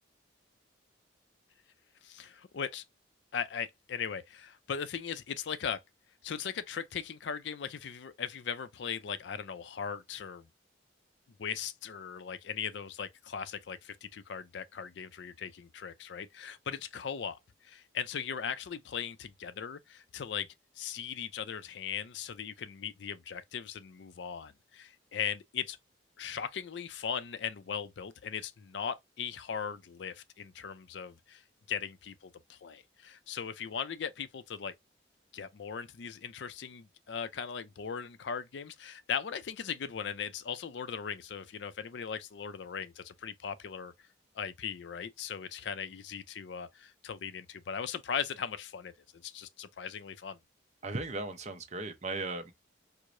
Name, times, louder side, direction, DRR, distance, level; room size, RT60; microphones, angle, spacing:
voice 1, 2.0-2.8 3.3-5.8 6.2-10.5 11.4-20.5 20.8-25.8 26.2-31.4 31.7-34.7 35.3-43.9 44.3-48.9 49.2-50.4, left 7 dB, 65° left, 0.4 m, -38 dB
voice 2, 50.8-52.5, right 2 dB, 35° right, 0.6 m, -37 dB
4.6 x 2.0 x 2.5 m
head